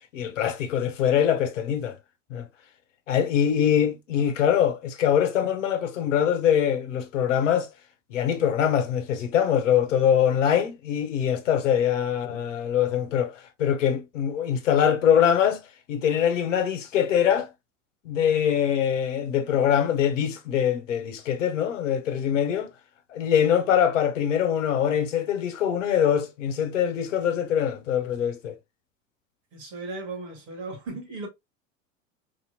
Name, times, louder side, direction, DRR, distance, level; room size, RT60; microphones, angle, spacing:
voice 1, 0.1-2.0 2.3-2.5 3.1-7.7 8.1-13.3 13.6-15.6 15.9-17.5 18.0-22.7 23.1-28.6, left 9 dB, 70° left, 1.0 m, -23 dB
voice 2, 29.5-31.3, right 3 dB, 50° right, 2.4 m, -36 dB
4.7 x 2.8 x 2.8 m
figure-of-eight pair, 80°, 38 cm